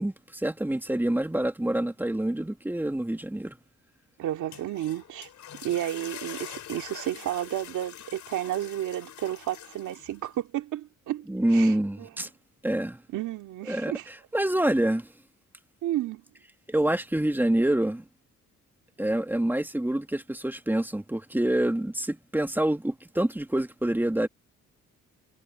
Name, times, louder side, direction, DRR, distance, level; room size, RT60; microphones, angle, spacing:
voice 1, 0.0-3.6 11.3-12.3 12.6-13.0 13.7-15.1 16.7-18.0 19.0-24.3, right 1 dB, 5° right, 1.4 m, -26 dB
voice 2, 4.2-5.3 5.6-12.1 13.1-14.1 15.8-16.2, right 12 dB, 80° right, 2.4 m, -32 dB
sound 1, 4.3-10.3, left 10 dB, 65° left, 3.6 m, -44 dB
cardioid pair, 90°, 30 cm